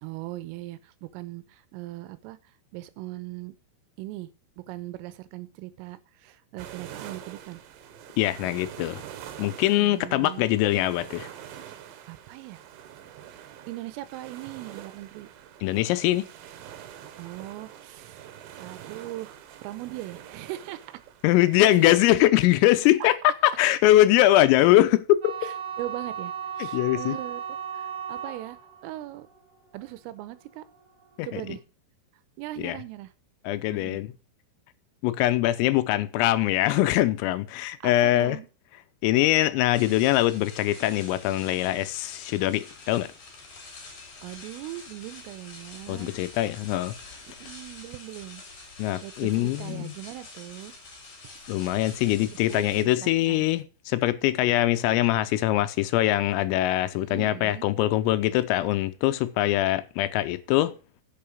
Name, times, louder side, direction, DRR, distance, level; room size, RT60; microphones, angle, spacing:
voice 1, 0.0-2.4 2.7-3.5 4.0-4.3 4.6-7.6 9.8-10.5 12.1-12.6 13.7-15.3 17.2-18.3 18.6-20.9 21.6-21.7 23.0-23.1 25.4-28.6 28.8-29.3 29.7-30.6 31.2-31.6 32.4-33.1 33.7-34.0 37.8-38.5 44.2-46.1 47.3-48.4 49.0-50.8 52.5-53.5 56.9-57.7, right 16 dB, 85° right, 3.4 m, -39 dB
sound 1, 6.6-22.1, right 10 dB, 70° right, 3.4 m, -45 dB
voice 2, 8.2-9.0 9.4-11.3 15.6-16.3 21.2-25.5 26.7-27.2 31.2-31.4 32.6-32.8 33.5-34.1 35.0-38.4 39.0-43.1 45.9-47.0 48.8-49.9 51.5-60.7, left 15 dB, 85° left, 3.5 m, -22 dB
sound 2, 25.2-31.4, right 7 dB, 30° right, 5.3 m, -37 dB
sound 3, 39.7-52.9, left 3 dB, 40° left, 4.7 m, -46 dB
10.5 x 7.9 x 5.2 m
omnidirectional pair, 5.9 m